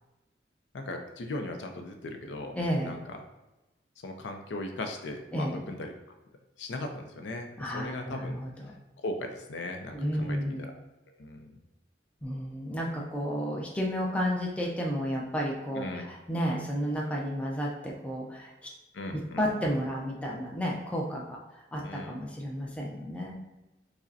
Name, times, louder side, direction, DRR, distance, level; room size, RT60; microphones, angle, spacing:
voice 1, 0.7-2.6 2.8-3.2 4.0-5.9 6.6-7.5 7.7-8.4 9.0-10.7 11.1-11.6 15.7-16.0 18.9-19.6 21.8-22.2, left 2 dB, 85° left, 4 dB, 0.5 m, -38 dB
voice 2, 2.5-2.9 5.3-5.6 7.6-8.7 9.9-10.6 12.2-18.7 19.4-23.4, equal, 5° left, -2 dB, 0.4 m, -32 dB
4.9 x 2.1 x 2.6 m, 1.0 s
head